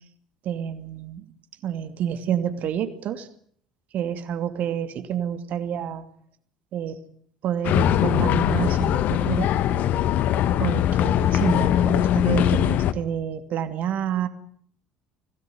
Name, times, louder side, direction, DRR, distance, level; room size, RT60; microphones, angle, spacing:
voice 1, 0.4-1.3 1.6-3.3 3.9-6.0 6.7-7.0 7.4-9.5 10.6-14.3, right 9 dB, 50° right, 10 dB, 2.6 m, -28 dB
sound 1, 7.6-12.9, left 10 dB, 50° left, 1.5 m, -21 dB
25.5 x 18.0 x 9.4 m, 0.63 s
figure-of-eight pair, 60°, 4 cm